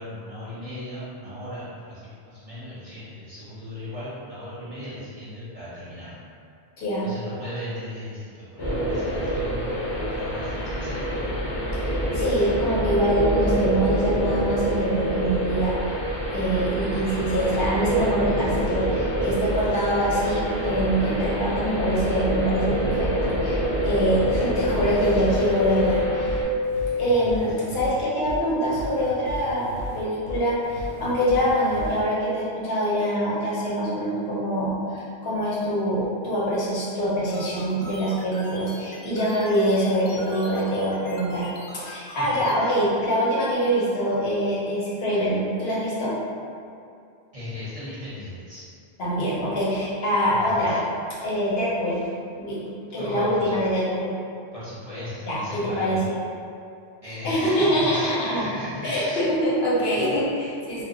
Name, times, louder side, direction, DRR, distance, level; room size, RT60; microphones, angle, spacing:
voice 1, 0.0-6.2 7.0-11.0 27.2-27.3 42.2-42.7 47.3-48.6 50.3-50.8 53.0-53.6 54.5-56.0 57.0-59.3 59.8-59.9, left 1 dB, 35° right, -11 dB, 0.7 m, -37 dB
sound 1, 8.6-26.4, equal, 30° left, 0.5 m, -26 dB
voice 2, 11.7-15.7 16.3-26.4 27.0-29.7 30.0-41.5 41.7-46.1 49.0-50.8 51.2-52.0 52.4-52.7 52.9-54.1 55.3-56.2 57.2-58.4 58.8-60.8, equal, 65° left, -7 dB, 0.8 m, -24 dB
sound 2, 24.3-32.0, left 1 dB, 90° right, 0.9 m, -36 dB
sound 3, 37.3-42.5, left 1 dB, 90° left, 0.9 m, -42 dB
2.1 x 2.0 x 3.6 m, 2.4 s
omnidirectional pair, 1.1 m